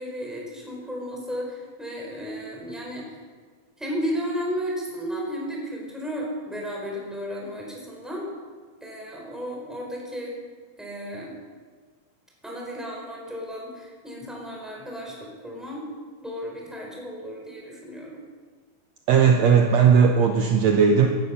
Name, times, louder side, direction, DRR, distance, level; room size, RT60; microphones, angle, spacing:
voice 1, 0.0-3.2 3.8-8.3 8.8-10.3 10.8-11.4 12.4-15.2 15.4-15.9 16.2-18.2, equal, ahead, -2 dB, 4.0 m, -33 dB
voice 2, 19.1-21.2, right 6 dB, 70° right, 3 dB, 1.9 m, -17 dB
17.5 x 12.0 x 5.7 m, 1.5 s
omnidirectional pair, 3.6 m